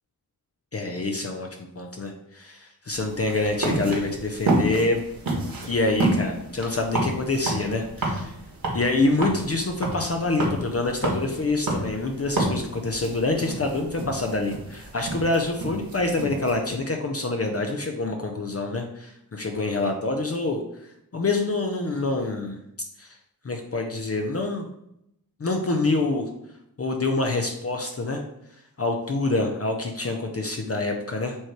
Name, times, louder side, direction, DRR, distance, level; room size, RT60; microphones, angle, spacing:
voice 1, 0.7-5.0 5.7-8.3 8.7-22.6 23.0-23.2 23.4-24.7 25.4-26.3 26.8-28.2 28.8-31.4, left 2 dB, 40° left, 3 dB, 0.6 m, -26 dB
sound 1, 2.9-16.5, right 2 dB, 70° right, 1.8 m, -30 dB
7.4 x 3.1 x 4.5 m, 0.80 s
wide cardioid pair, 100°, 36 cm